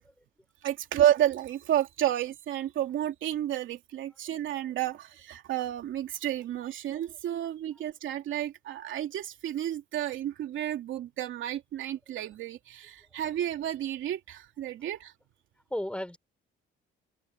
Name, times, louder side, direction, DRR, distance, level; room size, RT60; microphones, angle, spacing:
voice 1, 0.6-15.1, right 12 dB, 80° right, 3.0 m, -31 dB
voice 2, 15.7-16.2, left 1 dB, 5° left, 4.5 m, -36 dB
open air
cardioid pair, 90°, 20 cm